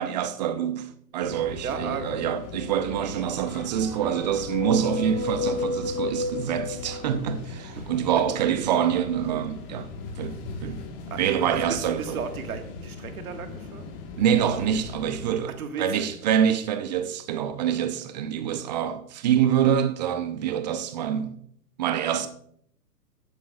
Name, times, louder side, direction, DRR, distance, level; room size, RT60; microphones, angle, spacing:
voice 1, 0.0-9.9 10.2-10.3 10.6-10.8 11.2-12.2 14.2-15.5 15.8-21.4 21.8-22.3, right 9 dB, 25° right, 0.6 m, -26 dB
sound 1, 1.2-15.3, left 4 dB, 35° left, 1.4 m, -39 dB
sound 2, 1.3-2.9 3.8-7.7, left 3 dB, 20° left, 2.4 m, -33 dB
voice 2, 1.6-2.2 7.7-8.3 10.6-10.7 11.1-13.9 15.5-16.5, right 6 dB, 60° right, 1.7 m, -36 dB
15.0 x 7.7 x 2.3 m
hypercardioid pair, 135°, 48 cm